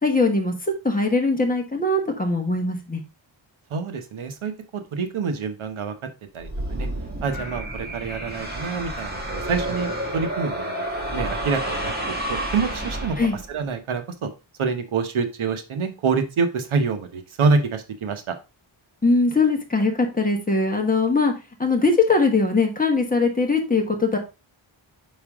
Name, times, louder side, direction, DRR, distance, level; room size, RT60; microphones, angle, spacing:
voice 1, 0.0-3.0 13.2-13.4 19.0-21.3 21.6-24.2, left 3 dB, 15° left, 2 dB, 1.2 m, -21 dB
voice 2, 3.7-5.9 6.3-6.9 7.2-10.7 11.1-11.9 12.3-13.2 13.5-14.3 14.6-18.3, right 4 dB, 80° right, 7 dB, 1.1 m, -26 dB
sound 1, 6.4-13.6, right 1 dB, 20° right, 1.6 m, -30 dB
5.4 x 5.0 x 3.5 m, 0.28 s
wide cardioid pair, 160°, 48 cm